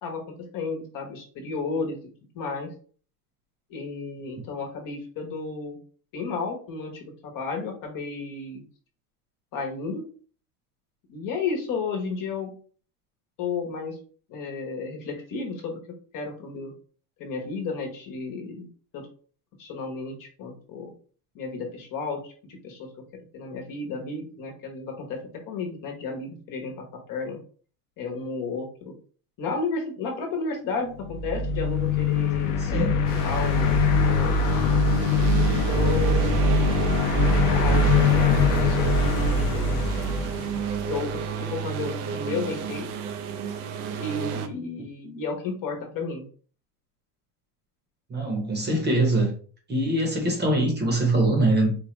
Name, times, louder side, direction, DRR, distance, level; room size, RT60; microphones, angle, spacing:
voice 1, 0.0-2.0 2.3-2.7 3.7-5.8 6.1-8.6 9.5-10.0 11.1-12.5 13.4-14.0 14.3-15.8 16.1-16.7 17.2-19.1 19.6-20.9 21.3-22.9 23.3-25.2 25.5-27.4 28.0-28.9 29.4-34.6 35.7-36.6 37.5-39.9 40.8-42.9 43.9-46.2, left 4 dB, 45° left, 1.1 m, -33 dB
sound 1, 31.0-41.2, left 3 dB, 60° left, 0.7 m, -22 dB
voice 2, 32.6-32.9 48.1-49.3 49.7-51.7, right 1 dB, 20° right, 1.0 m, -23 dB
sound 2, 33.1-44.5, right 7 dB, 75° right, 0.8 m, -32 dB
4.3 x 2.3 x 3.1 m
supercardioid pair, 125°, 46 cm